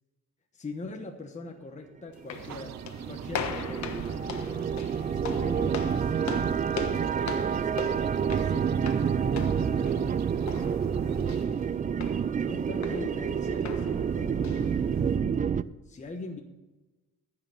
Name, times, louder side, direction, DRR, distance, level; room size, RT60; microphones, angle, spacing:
voice 1, 0.5-2.8 3.1-10.3 10.5-11.5 12.4-14.8 15.1-15.5 15.8-16.4, left 3 dB, 25° left, 3 dB, 1.2 m, -42 dB
sound 1, 2.1-15.2, left 7 dB, 65° left, 1.3 m, -41 dB
sound 2, 2.2-15.6, right 7 dB, 25° right, 0.4 m, -28 dB
sound 3, 2.3-11.4, right 10 dB, 60° right, 0.7 m, -46 dB
14.5 x 5.9 x 6.6 m, 1.1 s
cardioid pair, 90°, 30 cm